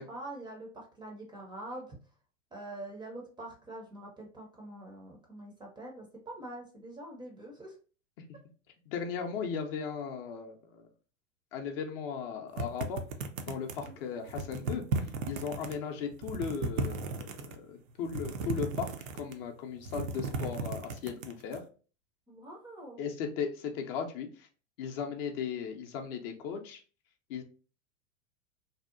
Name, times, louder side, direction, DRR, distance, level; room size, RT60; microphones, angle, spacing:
voice 1, 0.0-2.0 2.5-7.7 13.8-14.0 15.7-15.8 22.3-23.0, right 1 dB, 10° right, -1 dB, 0.5 m, -45 dB
voice 2, 8.9-10.8 11.5-13.0 13.5-14.8 15.3-18.9 19.1-21.6 23.0-24.5 24.8-26.8 27.3-27.4, left 6 dB, 45° left, 3 dB, 0.5 m, -37 dB
sound 1, 12.6-13.9 14.3-15.7 16.1-17.6 18.1-19.4 19.8-21.6, right 3 dB, 75° right, 0.6 m, -35 dB
2.7 x 2.1 x 2.4 m, 0.38 s
hypercardioid pair, 95°, 40 cm